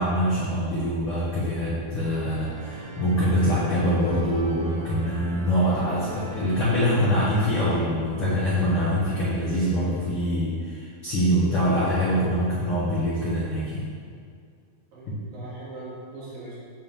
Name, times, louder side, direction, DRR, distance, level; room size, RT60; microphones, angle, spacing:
voice 1, 0.0-13.9 15.1-15.2, equal, 65° left, -9 dB, 1.4 m, -24 dB
sound 1, 2.1-7.8, right 1 dB, 85° right, 3.5 m, -39 dB
voice 2, 14.9-16.6, right 2 dB, 55° right, -8 dB, 3.6 m, -40 dB
9.0 x 8.1 x 3.7 m, 2.2 s
omnidirectional pair, 5.0 m